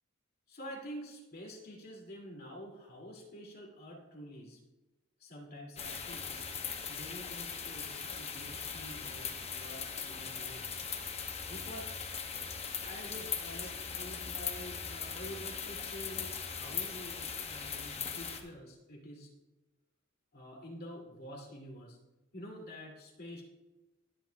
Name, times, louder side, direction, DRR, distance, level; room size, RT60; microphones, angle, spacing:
voice 1, 0.5-4.6 5.2-6.4 6.9-10.7 11.5-11.9 12.8-19.3 20.3-22.0 22.3-23.4, equal, 50° left, -1 dB, 2.4 m, -48 dB
sound 1, 5.8-18.4, left 6 dB, 30° left, 0.9 m, -40 dB
21.0 x 7.7 x 2.3 m, 1.1 s
head